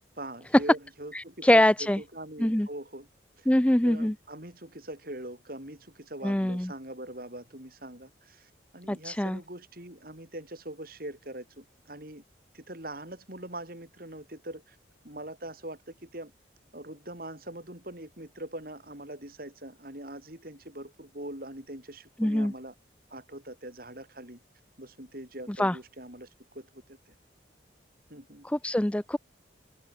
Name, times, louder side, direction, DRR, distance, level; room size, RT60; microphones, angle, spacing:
voice 1, 0.2-3.1 3.4-3.5 3.8-12.2 12.5-14.8 15.0-16.3 16.7-22.8 23.1-24.4 24.8-27.1 28.1-28.5, right 1 dB, 50° right, 5.5 m, -42 dB
voice 2, 1.1-2.0 2.4-2.7 3.5-4.1 6.2-6.7 8.9-9.4 22.2-22.5 25.6-25.8 28.4-29.2, left 1 dB, 5° left, 0.4 m, -24 dB
head